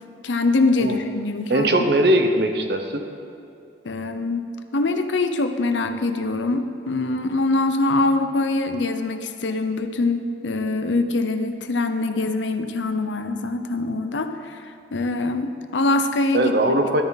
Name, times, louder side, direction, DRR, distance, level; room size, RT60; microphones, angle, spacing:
voice 1, 0.2-1.7 3.8-14.6 14.9-16.5, left 2 dB, 80° left, 8 dB, 0.8 m, -23 dB
voice 2, 1.5-3.0 16.3-17.0, right 1 dB, 60° right, 5 dB, 0.9 m, -20 dB
12.5 x 10.5 x 4.1 m, 2.6 s
head